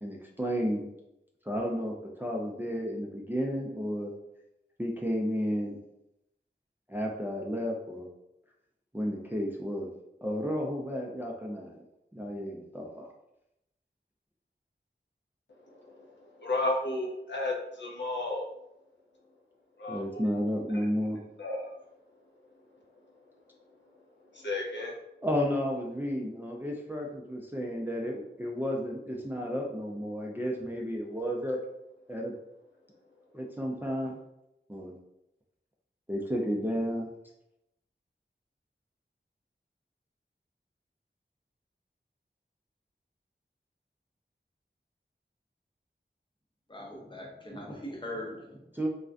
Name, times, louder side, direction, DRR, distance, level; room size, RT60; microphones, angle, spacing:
voice 1, 0.0-0.9 1.5-4.1 4.8-5.8 6.9-8.1 8.9-9.9 10.2-11.8 12.1-13.1 19.9-21.2 25.2-31.6 32.1-32.3 33.3-34.2 34.7-35.0 36.1-37.1 48.7-48.9, equal, 10° right, -1 dB, 0.3 m, -32 dB
voice 2, 15.7-18.5 19.8-20.3 20.7-20.9 21.4-21.7 24.3-24.9, left 2 dB, 70° left, -2 dB, 0.5 m, -33 dB
voice 3, 46.7-48.6, left 1 dB, 25° left, -2 dB, 0.6 m, -40 dB
2.4 x 2.1 x 2.4 m, 0.86 s
wide cardioid pair, 50°, 20 cm